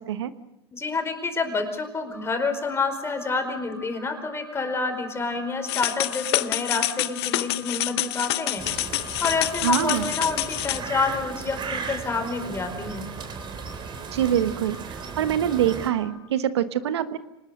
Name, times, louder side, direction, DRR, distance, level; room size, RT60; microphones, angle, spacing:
voice 1, 0.7-8.6 9.2-13.1, left 4 dB, 20° left, 6 dB, 4.9 m, -28 dB
Alarm, 2.1-16.2, equal, 5° right, 6.5 m, -47 dB
sound 1, 5.7-10.8, left 17 dB, 75° left, 0.8 m, -27 dB
sound 2, 8.6-15.9, right 5 dB, 35° right, 3.5 m, -36 dB
voice 2, 9.6-10.1 14.1-17.2, right 10 dB, 90° right, 12 dB, 1.3 m, -25 dB
25.5 x 20.0 x 6.6 m, 0.94 s
hypercardioid pair, 105°, 14 cm